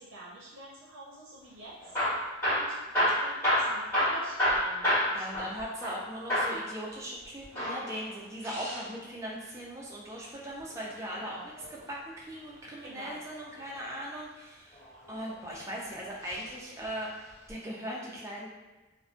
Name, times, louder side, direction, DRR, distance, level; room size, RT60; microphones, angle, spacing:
voice 1, 0.0-2.0 2.4-5.6 11.1-11.5 12.8-13.2, right 1 dB, 85° right, -5 dB, 0.5 m, -48 dB
Hammer / Drill, 1.8-6.0 6.3-6.6 7.4-8.9 10.6-11.8 13.5-14.0 14.7-15.5 16.2-16.5 16.8-16.9 17.5-17.6, equal, 15° left, 1.3 m, -29 dB
voice 2, 5.1-11.4 11.9-14.8 15.1-17.1 17.5-18.5, equal, 15° right, -4 dB, 0.3 m, -39 dB
2.4 x 2.1 x 2.4 m, 1.1 s
head